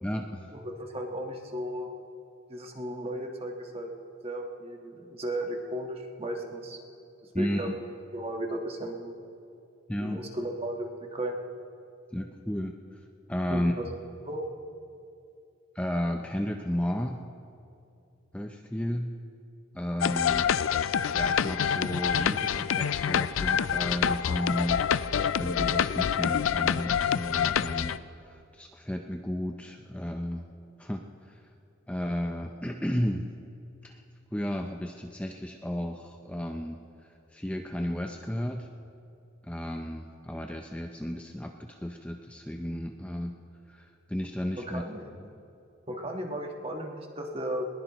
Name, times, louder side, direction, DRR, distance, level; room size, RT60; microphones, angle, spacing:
voice 1, 0.0-0.5 7.3-7.7 9.9-10.2 12.1-12.8 13.3-14.0 15.7-17.2 18.3-19.2 19.7-20.6 21.1-24.8 25.4-30.5 30.8-31.0 31.3-31.4 31.9-33.3 33.8-34.0 34.3-36.8 37.3-38.7 39.4-43.3 43.7-44.8 45.2-45.3, equal, 5° left, 3 dB, 0.5 m, -33 dB
voice 2, 0.5-1.9 2.5-3.9 4.2-6.8 7.4-7.7 8.1-9.2 10.0-11.4 13.5-13.9 14.2-14.5 44.6-45.1 45.9-47.7, right 1 dB, 30° right, 2 dB, 1.4 m, -35 dB
sound 1, 20.0-28.0, left 8 dB, 80° left, 0.4 m, -27 dB
21.0 x 20.0 x 3.0 m, 2.6 s
head